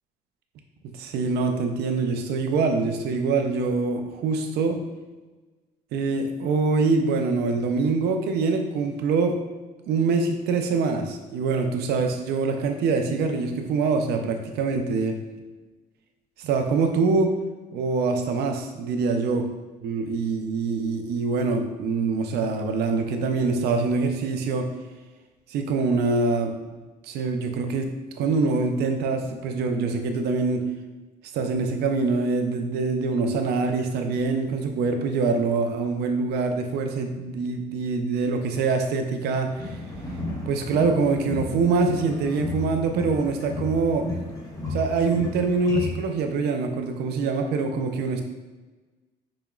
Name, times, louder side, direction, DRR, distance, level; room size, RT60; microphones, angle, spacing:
voice 1, 0.9-4.8 5.9-9.4 9.9-15.2 16.4-17.4 17.7-19.5 19.8-24.7 25.5-30.6 31.3-39.8 40.5-44.1 44.7-48.2, right 4 dB, 75° right, 5 dB, 0.6 m, -24 dB
sound 1, 39.5-46.0, left 2 dB, 20° left, 1.2 m, -33 dB
5.0 x 2.9 x 2.3 m, 1.2 s
cardioid pair, 110°, 17 cm